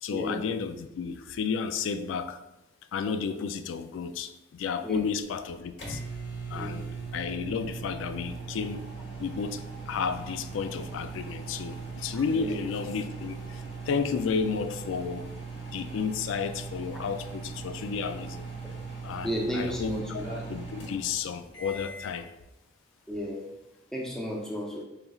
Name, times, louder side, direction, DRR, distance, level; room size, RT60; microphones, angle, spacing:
voice 1, 0.0-2.4 2.9-6.0 6.5-6.9 7.1-8.9 9.2-15.3 15.7-18.5 19.0-22.3, left 6 dB, 85° left, 10 dB, 0.3 m, -32 dB
sound 1, 5.2-22.2, right 4 dB, 60° left, 1.0 m, -39 dB
voice 2, 19.2-20.2 23.1-23.4 23.9-24.8, equal, 5° left, -2 dB, 0.6 m, -33 dB
4.8 x 3.0 x 2.3 m, 0.93 s
head